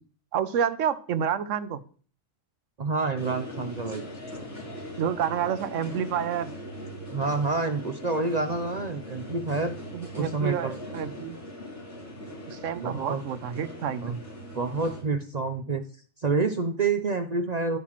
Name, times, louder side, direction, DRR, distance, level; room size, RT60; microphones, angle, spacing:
voice 1, 0.3-1.8 5.0-6.5 9.9-11.4 12.5-14.2, right 8 dB, 75° right, 1.0 m, -29 dB
voice 2, 2.8-4.0 7.1-9.8 10.1-10.7 12.7-13.2 14.0-14.1 14.5-15.8 16.2-17.8, right 3 dB, 45° right, 0.6 m, -28 dB
sound 1, 3.1-15.0, equal, 65° left, 5.6 m, -40 dB
14.0 x 5.9 x 3.1 m
omnidirectional pair, 1.3 m